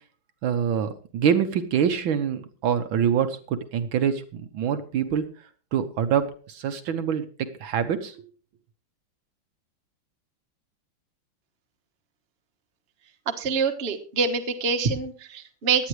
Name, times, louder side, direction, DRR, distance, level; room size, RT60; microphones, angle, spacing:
voice 1, 0.4-5.2 5.7-8.2, right 8 dB, 70° right, 8 dB, 1.6 m, -25 dB
voice 2, 13.4-15.9, right 5 dB, 35° right, 5 dB, 1.2 m, -25 dB
17.5 x 11.0 x 3.2 m, 0.40 s
omnidirectional pair, 2.4 m